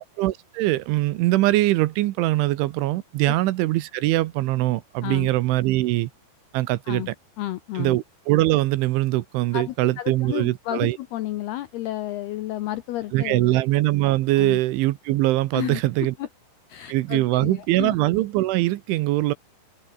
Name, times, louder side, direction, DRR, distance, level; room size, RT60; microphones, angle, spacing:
voice 1, 0.0-6.1 6.5-7.0 7.8-11.0 13.1-16.1 16.9-19.3, right 17 dB, 75° right, 3.2 m, -22 dB
voice 2, 7.4-8.0 9.5-13.6 14.4-14.6 15.5-16.3 16.7-18.0, left 15 dB, 85° left, 2.3 m, -32 dB
open air
omnidirectional pair, 5.8 m